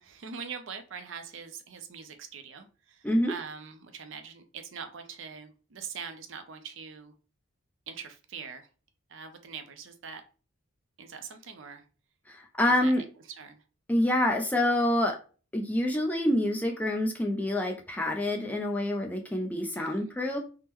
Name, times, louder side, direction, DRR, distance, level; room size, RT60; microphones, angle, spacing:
voice 1, 0.0-7.1 7.9-8.7 9.1-10.2 11.0-11.8 12.6-13.0 13.4-13.6 19.8-20.1, right 6 dB, 65° right, 7 dB, 0.5 m, -43 dB
voice 2, 12.3-13.0 13.9-15.2 15.5-20.4, left 1 dB, 10° left, 2 dB, 0.4 m, -27 dB
3.5 x 2.1 x 3.0 m, 0.35 s
head